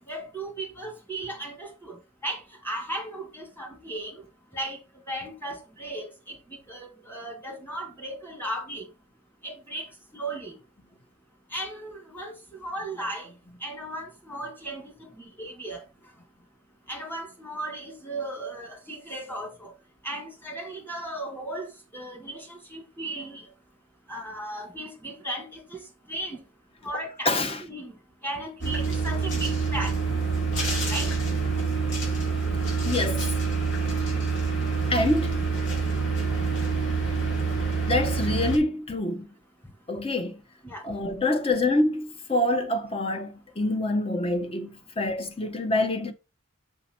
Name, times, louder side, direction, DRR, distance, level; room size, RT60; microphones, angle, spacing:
voice 1, 0.0-4.2 4.5-4.8 5.1-8.9 9.4-10.5 11.5-13.3 13.6-15.8 16.9-19.7 20.0-23.5 24.1-25.8 26.1-26.4 26.8-27.3 27.6-28.0 28.2-29.9 30.9-31.1 40.6-40.8, right 1 dB, 10° left, 2.0 m, -36 dB
voice 2, 26.9-27.6 32.8-33.3 34.9-35.4 37.8-39.3 39.9-40.4 40.8-46.1, left 2 dB, 30° left, 0.8 m, -26 dB
sound 1, 28.6-38.6, right 4 dB, 65° left, 2.7 m, -26 dB
5.8 x 5.1 x 4.3 m
head